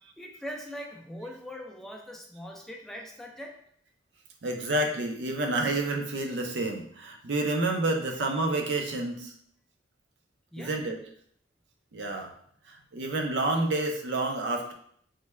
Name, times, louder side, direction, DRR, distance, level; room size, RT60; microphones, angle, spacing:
voice 1, 0.2-3.6 10.5-10.8, equal, ahead, 0 dB, 0.3 m, -41 dB
voice 2, 4.4-9.3 10.6-11.0 11.9-12.3 12.7-14.7, right 2 dB, 75° right, 4 dB, 0.5 m, -29 dB
3.2 x 2.2 x 3.2 m, 0.64 s
head